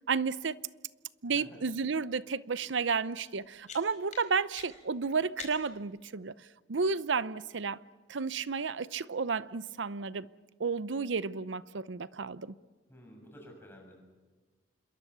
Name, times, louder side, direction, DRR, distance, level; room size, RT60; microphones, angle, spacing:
voice 1, 0.1-0.5 1.2-6.3 6.7-7.8 8.1-10.3 10.6-12.5, right 5 dB, 80° right, 0.7 m, -32 dB
voice 2, 1.2-1.6 12.9-14.0, equal, 15° left, 6.7 m, -52 dB
sound 1, 3.3-5.9, left 6 dB, 40° left, 4.7 m, -49 dB
27.0 x 22.0 x 6.9 m
head